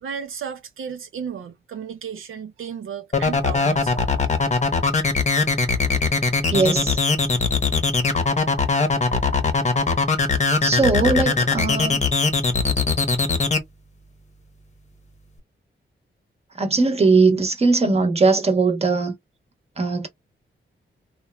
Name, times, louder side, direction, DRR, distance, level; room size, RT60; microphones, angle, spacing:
voice 1, 0.0-4.3, right 7 dB, 80° right, 0.5 m, -34 dB
sound 1, 3.1-13.6, left 4 dB, 35° left, 0.8 m, -20 dB
voice 2, 6.5-7.0 10.6-12.0 16.6-19.1 19.8-20.1, right 3 dB, 30° right, 0.9 m, -19 dB
3.0 x 2.2 x 2.3 m
wide cardioid pair, 95°, 21 cm